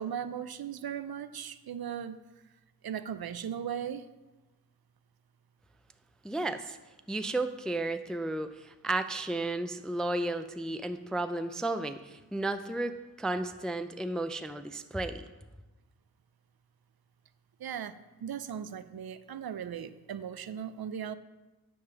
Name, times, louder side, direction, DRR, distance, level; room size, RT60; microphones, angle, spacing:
voice 1, 0.0-2.2 2.8-4.1 17.6-17.9 18.2-21.2, right 8 dB, 75° right, 13 dB, 0.5 m, -37 dB
voice 2, 6.2-6.8 7.1-15.3, right 2 dB, ahead, 10 dB, 0.3 m, -33 dB
9.3 x 3.7 x 5.8 m, 1.1 s
wide cardioid pair, 50°, 38 cm